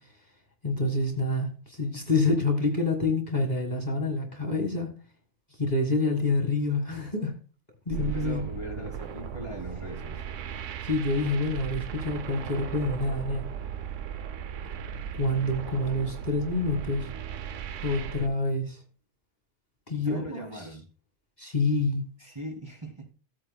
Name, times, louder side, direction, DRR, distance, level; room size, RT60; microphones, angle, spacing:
voice 1, 0.6-4.9 5.6-7.3 7.9-8.4 10.8-13.5 15.1-17.1 17.8-18.8 19.9-20.5 21.4-22.1, left 2 dB, 35° left, 3 dB, 1.8 m, -27 dB
sound 1, 7.9-18.3, right 9 dB, 80° right, 1.0 m, -37 dB
voice 2, 8.0-10.2 20.0-20.9 22.2-23.1, right 1 dB, 20° right, 0 dB, 2.7 m, -40 dB
15.0 x 8.8 x 2.2 m, 0.35 s
omnidirectional pair, 1.3 m